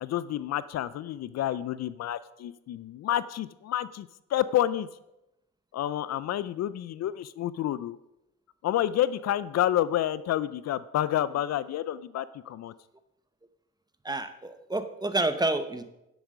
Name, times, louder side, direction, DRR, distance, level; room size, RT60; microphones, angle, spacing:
voice 1, 0.0-4.9 5.7-8.0 8.6-12.7, left 12 dB, 60° left, 17 dB, 0.4 m, -29 dB
voice 2, 14.0-15.8, right 2 dB, 15° right, 10 dB, 0.9 m, -29 dB
10.5 x 8.1 x 5.0 m, 0.89 s
cardioid pair, 90°, 30 cm